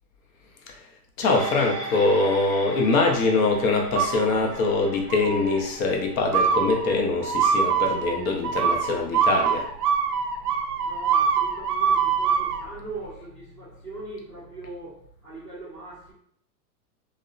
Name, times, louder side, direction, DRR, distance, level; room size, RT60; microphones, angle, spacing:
voice 1, 1.2-9.7, left 3 dB, 60° left, 3 dB, 0.7 m, -23 dB
sound 1, 1.2-9.9 10.3-10.4, right 2 dB, 40° left, 1.0 m, -40 dB
sound 2, 3.9-4.7 5.1-5.6 6.3-12.6, right 6 dB, 75° right, 0.5 m, -24 dB
voice 2, 10.8-16.1, right 3 dB, 5° right, -16 dB, 0.3 m, -40 dB
2.6 x 2.1 x 2.3 m, 0.67 s
hypercardioid pair, 135°, 48 cm